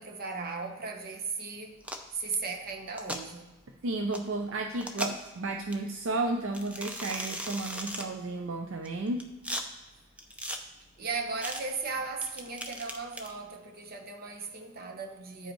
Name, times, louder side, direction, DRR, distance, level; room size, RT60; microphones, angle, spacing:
voice 1, 0.0-1.8 2.1-3.5 11.0-15.5, right 4 dB, 45° right, 0.9 m, -36 dB
sound 1, 1.8-2.1 2.9-3.2 4.1-4.2 4.8-5.3 5.7-5.8 6.5-8.1 8.8-9.6 10.2-10.6 11.4-11.6 12.2-13.3, equal, 5° right, 0.5 m, -37 dB
voice 2, 3.8-9.2, right 2 dB, 60° right, 0.5 m, -33 dB
8.7 x 5.2 x 4.5 m
head